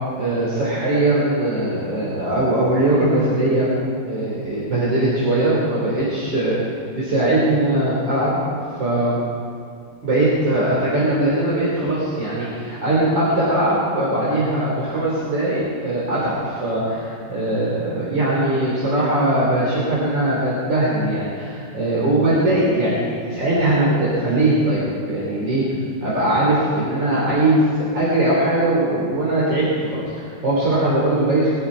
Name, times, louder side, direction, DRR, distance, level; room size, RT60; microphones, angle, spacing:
voice 1, 0.2-3.7 4.1-6.6 7.0-8.4 8.8-9.2 10.0-25.6 26.0-31.5, right 1 dB, 70° right, -7 dB, 3.9 m, -20 dB
22.0 x 12.5 x 5.0 m, 2.2 s
omnidirectional pair, 2.1 m